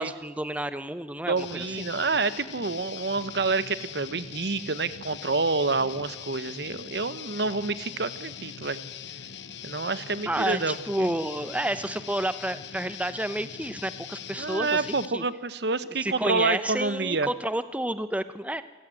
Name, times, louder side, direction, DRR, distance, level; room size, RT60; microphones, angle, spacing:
voice 1, 0.0-1.9 10.3-14.9 15.1-15.2 16.0-18.6, right 1 dB, 10° right, 12 dB, 0.8 m, -30 dB
voice 2, 1.3-8.8 9.6-11.1 14.4-17.3, right 3 dB, 65° right, 14 dB, 1.0 m, -28 dB
Guitar, 1.4-15.1, left 8 dB, 75° left, 1.0 m, -41 dB
27.5 x 14.5 x 9.1 m, 1.4 s
head